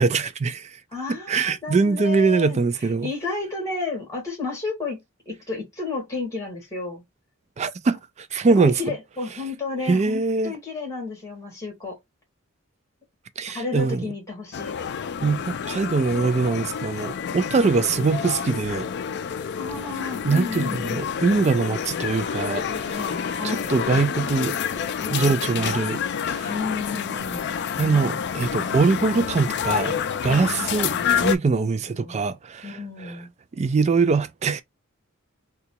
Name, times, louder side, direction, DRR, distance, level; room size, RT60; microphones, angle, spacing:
voice 1, 0.0-0.8 1.3-3.1 7.6-8.8 9.9-10.6 13.4-14.1 15.2-18.9 20.2-22.7 23.4-24.6 25.1-26.5 27.8-30.9 31.2-33.1 33.6-34.6, right 4 dB, 35° right, 0.4 m, -23 dB
voice 2, 0.9-7.0 8.5-12.0 13.4-14.7 19.6-21.0 22.7-23.7 25.0-25.8 26.4-27.6 27.9-28.2 30.2-31.1 31.9-32.2 32.6-33.3, left 3 dB, 15° left, 1.9 m, -32 dB
sound 1, 14.5-31.4, left 7 dB, 55° left, 0.4 m, -28 dB
3.7 x 2.3 x 2.8 m
head